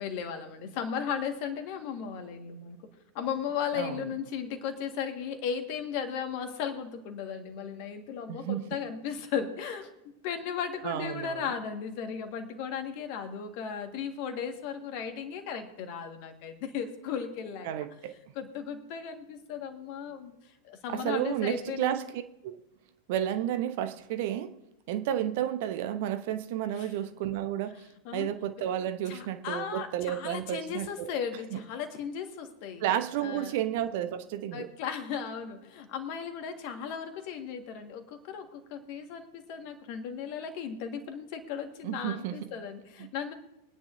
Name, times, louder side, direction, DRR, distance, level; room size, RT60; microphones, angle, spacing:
voice 1, 0.0-2.9 3.1-9.9 10.2-17.7 18.4-20.4 20.6-22.0 26.7-26.9 28.1-28.3 29.1-32.8 33.2-33.6 34.5-43.3, left 7 dB, 45° left, 6 dB, 1.8 m, -36 dB
voice 2, 3.7-4.1 8.3-8.6 10.8-11.5 17.6-18.2 20.9-22.6 23.1-24.5 24.9-27.9 28.1-31.1 31.5-31.6 32.8-34.7 41.8-42.5 43.0-43.1, right 11 dB, 50° right, 10 dB, 0.9 m, -32 dB
23.5 x 10.0 x 2.8 m, 0.88 s
figure-of-eight pair, 90°, 0 cm